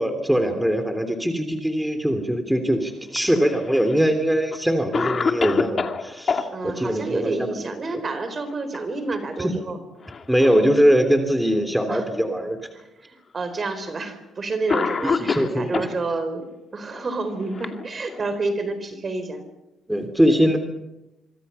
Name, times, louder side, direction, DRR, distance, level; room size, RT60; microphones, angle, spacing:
voice 1, 0.0-7.3 9.4-9.5 10.3-12.6 15.2-15.9 19.9-20.6, equal, 5° right, 6 dB, 3.2 m, -21 dB
Cough, 3.1-4.0 4.5-4.6 4.9-6.5 8.3-8.8 9.1-9.2 10.0-10.7 11.5-11.6 12.6-12.7 13.9-14.1 14.7-15.9 16.9-18.3, left 5 dB, 40° left, 2.3 m, -27 dB
voice 2, 6.5-9.8 11.9-12.1 12.7-16.5 16.7-19.4, right 3 dB, 40° right, 10 dB, 4.3 m, -29 dB
26.0 x 25.0 x 5.7 m, 0.95 s
cardioid pair, 90°, 0 cm